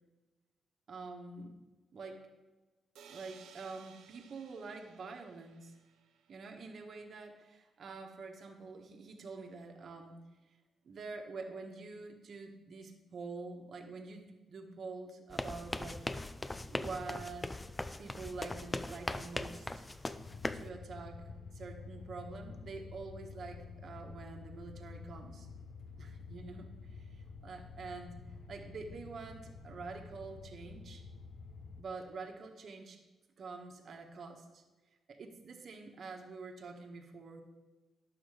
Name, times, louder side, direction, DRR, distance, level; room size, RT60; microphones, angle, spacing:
voice 1, 0.9-1.5 1.9-2.2 3.1-5.7 6.3-10.2 10.5-10.6 10.8-16.4 16.7-17.5 18.0-19.9 20.5-21.2 21.5-25.5 26.0-28.2 28.5-31.0 31.8-33.0 33.4-34.6 35.1-37.4, right 4 dB, 60° right, 2 dB, 1.3 m, -46 dB
sound 1, 2.9-6.8, right 7 dB, 90° right, 0.8 m, -59 dB
sound 2, 15.3-20.7, left 2 dB, 20° left, 0.5 m, -40 dB
sound 3, 20.2-31.8, left 4 dB, 75° left, 1.0 m, -49 dB
10.5 x 7.0 x 4.9 m, 1.2 s
cardioid pair, 85°, 0 cm